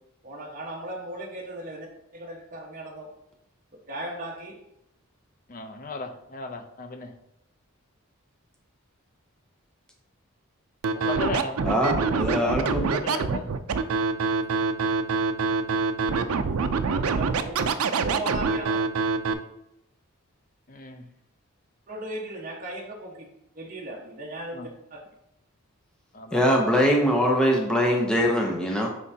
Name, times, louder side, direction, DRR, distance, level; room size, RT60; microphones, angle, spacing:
voice 1, 0.2-1.9 2.1-3.1 3.9-4.6 11.0-11.5 17.1-17.7 17.9-18.8 21.9-23.2 23.5-24.6 24.9-25.0, right 1 dB, 40° right, -1 dB, 1.3 m, -37 dB
voice 2, 5.5-7.1 10.9-11.7 12.4-13.5 20.7-21.0 24.5-24.7 26.1-26.4, left 3 dB, 40° left, 6 dB, 0.6 m, -35 dB
Scratching (performance technique), 10.8-19.3, right 4 dB, 80° right, 0.5 m, -25 dB
voice 3, 11.6-12.9 26.3-28.9, equal, 5° left, -1 dB, 0.7 m, -22 dB
9.6 x 3.6 x 2.8 m, 0.81 s
head